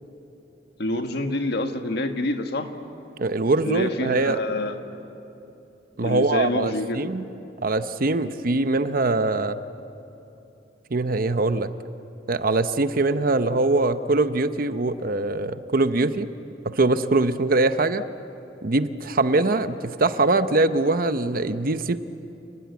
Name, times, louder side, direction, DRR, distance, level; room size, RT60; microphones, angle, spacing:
voice 1, 0.8-2.7 3.6-4.8 6.0-7.1, left 2 dB, 60° left, 6 dB, 1.6 m, -27 dB
voice 2, 3.2-4.4 6.0-7.3 7.6-9.6 10.9-11.7 12.3-16.3 16.7-18.0 18.6-22.0, right 2 dB, 55° right, 11 dB, 0.8 m, -22 dB
29.0 x 20.0 x 8.3 m, 3.0 s
head